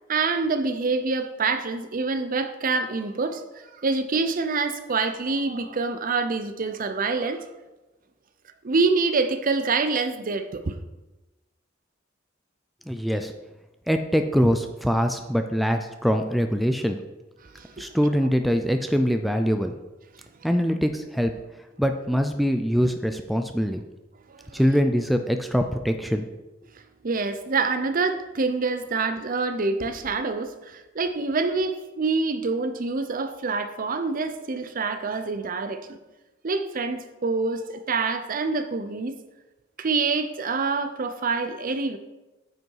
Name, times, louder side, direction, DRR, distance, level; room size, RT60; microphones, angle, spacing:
voice 1, 0.1-3.4 3.8-7.4 8.6-10.8 17.6-17.9 24.3-24.6 27.0-36.0 36.4-39.1 39.8-42.0, right 4 dB, 45° right, 0.6 m, -26 dB
voice 2, 12.9-13.3 13.9-17.0 17.8-19.7 20.4-21.3 21.8-23.8 24.5-26.3, equal, ahead, 0.4 m, -23 dB
9.3 x 5.4 x 4.7 m
head